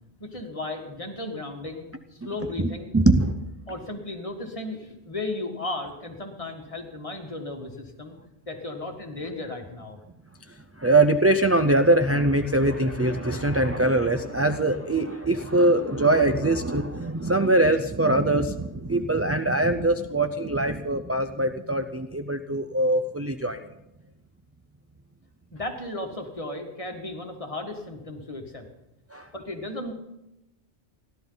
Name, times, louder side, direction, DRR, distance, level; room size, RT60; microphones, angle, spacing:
voice 1, 0.2-2.9 3.7-8.2 8.5-10.0 25.5-28.7 29.3-29.9, left 2 dB, 30° left, 3 dB, 1.9 m, -35 dB
voice 2, 2.6-3.4 10.8-23.7 29.1-29.3, right 2 dB, 20° right, 5 dB, 0.4 m, -22 dB
30.0 x 11.5 x 4.0 m, 0.93 s
omnidirectional pair, 1.2 m